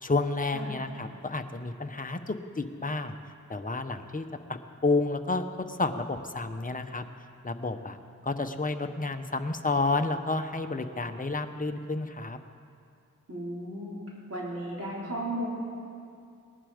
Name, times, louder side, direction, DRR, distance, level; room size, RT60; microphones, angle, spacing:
voice 1, 0.0-3.1 3.5-4.3 4.8-7.0 7.4-8.0 8.2-12.4, left 3 dB, 25° left, 7 dB, 0.9 m, -30 dB
voice 2, 13.3-14.0 14.3-15.5, right 1 dB, 50° right, -5 dB, 4.1 m, -35 dB
18.5 x 11.0 x 5.1 m, 2.4 s
wide cardioid pair, 70°, 31 cm